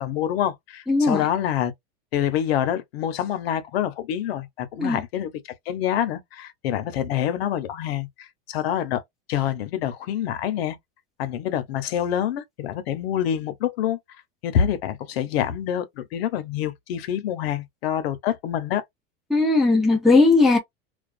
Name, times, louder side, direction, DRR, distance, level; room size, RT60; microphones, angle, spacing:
voice 1, 0.0-1.7 2.1-5.3 5.7-9.0 9.3-10.8 11.2-14.0 14.4-18.8, left 10 dB, 85° left, 0.8 m, -26 dB
voice 2, 0.9-1.2 4.8-5.0 19.3-20.6, left 3 dB, ahead, 0.4 m, -18 dB
2.4 x 2.4 x 2.4 m
supercardioid pair, 175°, 29 cm